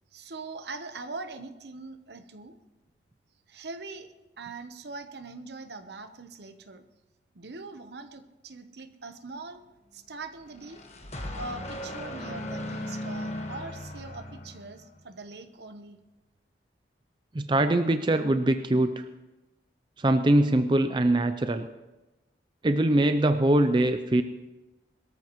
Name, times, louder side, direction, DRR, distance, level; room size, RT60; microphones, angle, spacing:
voice 1, 0.1-2.6 3.5-6.8 7.3-9.6 9.9-10.8 11.3-16.0, right 3 dB, 65° right, 9 dB, 1.0 m, -42 dB
sound 1, 10.4-15.0, left 1 dB, 35° left, 1.3 m, -37 dB
voice 2, 17.3-19.0 20.0-21.7 22.6-24.2, right 1 dB, 25° right, 9 dB, 0.5 m, -23 dB
22.5 x 13.5 x 3.1 m, 1.1 s
head